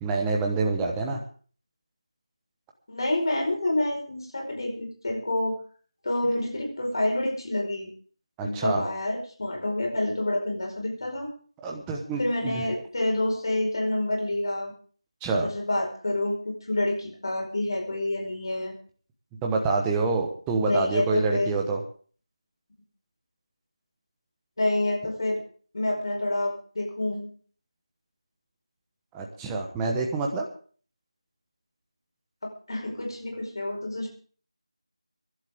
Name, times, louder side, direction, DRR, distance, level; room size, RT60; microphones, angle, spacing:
voice 1, 0.0-1.2 8.4-8.8 11.6-12.7 15.2-15.5 19.4-21.8 29.1-30.4, right 3 dB, 5° right, 0 dB, 1.1 m, -27 dB
voice 2, 2.9-5.6 6.0-7.9 8.4-11.3 12.2-14.7 15.5-18.7 20.7-21.5 24.6-25.4 25.7-27.3 32.4-34.1, left 1 dB, 45° left, 1 dB, 4.9 m, -28 dB
24.5 x 11.5 x 3.6 m, 0.43 s
figure-of-eight pair, 175°, 3 cm